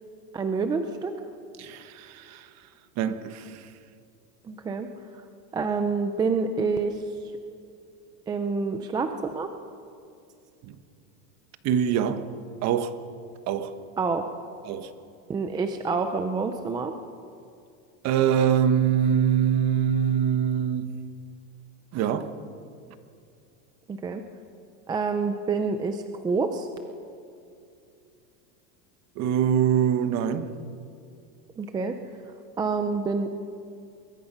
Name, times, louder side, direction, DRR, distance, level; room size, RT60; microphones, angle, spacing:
voice 1, 0.3-1.1 4.4-4.9 5.5-7.0 8.3-9.5 14.0-14.3 15.3-16.9 23.9-24.2 24.9-26.7 31.6-32.0 32.6-33.3, right 4 dB, 10° right, 0.4 m, -27 dB
voice 2, 1.6-2.5 3.0-3.7 10.6-10.8 11.6-12.3 12.6-12.9 13.5-13.7 14.6-14.9 18.0-20.9 21.9-22.3 29.2-30.5, right 9 dB, 35° right, 1.3 m, -24 dB
23.0 x 22.0 x 5.6 m
supercardioid pair, 155°, 45 cm